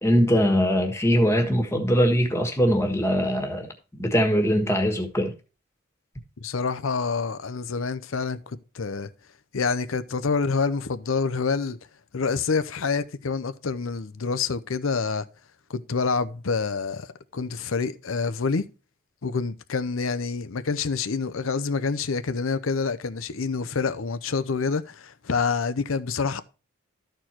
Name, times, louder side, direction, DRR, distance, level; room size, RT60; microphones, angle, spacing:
voice 1, 0.0-5.3, equal, 15° left, 1.4 m, -22 dB
voice 2, 6.4-9.1 9.5-11.8 12.1-15.3 15.7-17.1 17.3-18.7 19.2-26.4, left 4 dB, 85° left, 0.7 m, -27 dB
13.0 x 4.5 x 4.4 m
head